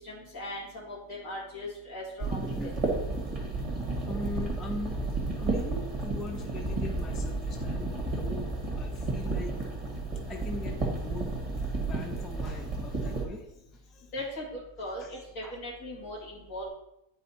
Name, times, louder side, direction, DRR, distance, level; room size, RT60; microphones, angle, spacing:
voice 1, 0.0-2.7 14.1-16.7, left 1 dB, 70° left, -5 dB, 2.8 m, -39 dB
sound 1, 2.2-13.2, right 2 dB, 25° right, 1.7 m, -32 dB
voice 2, 2.4-2.8 4.1-5.0 5.4-8.5 8.8-9.6 9.9-10.0 10.3-11.4 11.7-14.1 15.0-15.1 15.4-15.6, left 1 dB, ahead, 2 dB, 0.6 m, -40 dB
9.4 x 4.9 x 4.2 m, 0.85 s
omnidirectional pair, 1.4 m